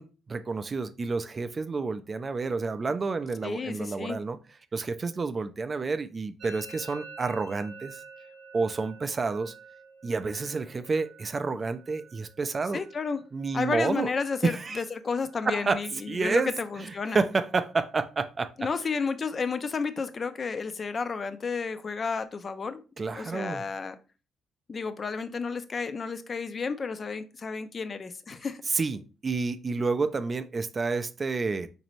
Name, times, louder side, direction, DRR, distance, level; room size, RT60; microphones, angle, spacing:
voice 1, 0.0-4.4 4.7-8.0 8.5-9.5 10.0-12.8 13.3-14.1 14.4-14.8 15.5-16.5 16.8-18.7 23.0-23.6 28.7-31.7, right 4 dB, 35° right, 0.3 m, -29 dB
voice 2, 3.4-4.2 12.7-13.2 13.5-17.2 18.6-22.8 23.1-24.0 24.7-28.6, left 5 dB, 40° left, 0.4 m, -32 dB
Musical instrument, 6.4-14.1 14.3-14.9 15.1-15.7 16.0-18.0, right 4 dB, 60° right, 0.7 m, -50 dB
4.0 x 2.6 x 3.0 m
cardioid pair, 90°, 0 cm